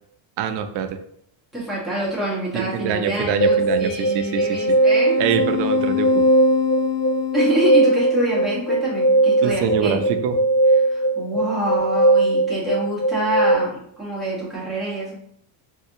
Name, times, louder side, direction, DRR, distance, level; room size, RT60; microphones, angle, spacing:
voice 1, 0.4-1.0 2.5-4.8 5.2-6.3 9.4-10.4, right 7 dB, 65° right, 8 dB, 0.5 m, -24 dB
voice 2, 1.5-5.2 7.3-10.1 10.8-15.1, right 1 dB, ahead, -7 dB, 1.1 m, -26 dB
sound 1, 3.4-13.5, right 1 dB, 45° left, 0.7 m, -19 dB
3.2 x 2.8 x 2.7 m, 0.69 s
cardioid pair, 160°, 46 cm